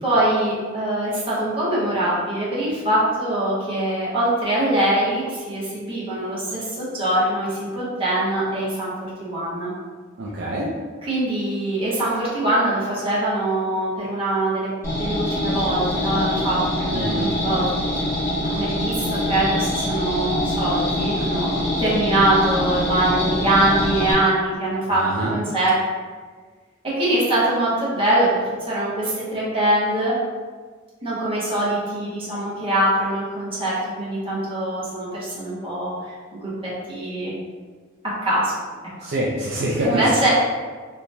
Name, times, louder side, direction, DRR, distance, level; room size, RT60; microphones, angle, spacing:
voice 1, 0.0-8.9 9.2-9.7 11.0-14.7 15.0-18.1 18.4-25.8 26.9-28.3 28.7-30.2 31.0-37.3 38.0-38.6 39.8-40.3, right 1 dB, 30° right, -9 dB, 1.2 m, -23 dB
voice 2, 10.2-10.7 16.9-17.3 24.9-25.3 39.0-40.0, right 1 dB, 55° right, -6 dB, 0.5 m, -25 dB
sound 1, 14.8-24.1, left 1 dB, 15° left, 1.1 m, -24 dB
3.3 x 2.9 x 2.7 m, 1.5 s
head